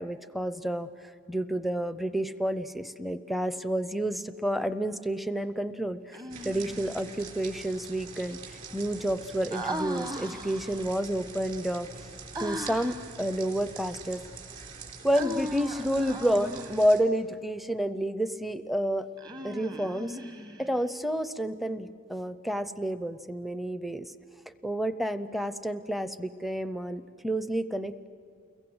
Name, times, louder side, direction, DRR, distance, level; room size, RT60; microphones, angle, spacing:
voice 1, 0.0-11.9 12.4-14.2 15.0-19.1 19.4-20.2 20.6-24.1 24.6-28.1, right 1 dB, ahead, 12 dB, 0.6 m, -30 dB
Human voice, 6.1-7.0 9.5-10.9 12.3-13.1 15.1-16.9 19.2-20.8, right 1 dB, 20° right, 1.1 m, -38 dB
sound 1, 6.3-17.0, right 4 dB, 40° right, 3.6 m, -45 dB
29.5 x 22.0 x 7.9 m, 2.3 s
head